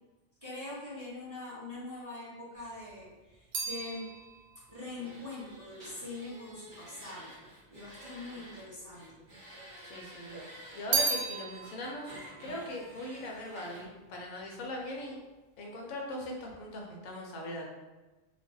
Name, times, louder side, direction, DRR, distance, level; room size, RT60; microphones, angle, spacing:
voice 1, 0.4-4.1 4.7-7.3 7.7-9.2, left 2 dB, 15° right, -10 dB, 1.1 m, -43 dB
sound 1, 2.6-7.0 7.8-8.6 8.9-10.0 10.3-13.9 14.1-14.7, right 4 dB, 60° right, 0.7 m, -37 dB
sound 2, 5.0-8.6 8.9-11.0 11.6-13.8, right 1 dB, 40° right, 1.2 m, -51 dB
voice 2, 9.8-10.4 10.7-12.1 12.4-15.2 15.6-17.7, left 1 dB, 90° left, -1 dB, 1.1 m, -40 dB
3.6 x 2.4 x 2.6 m, 1.2 s
omnidirectional pair, 1.4 m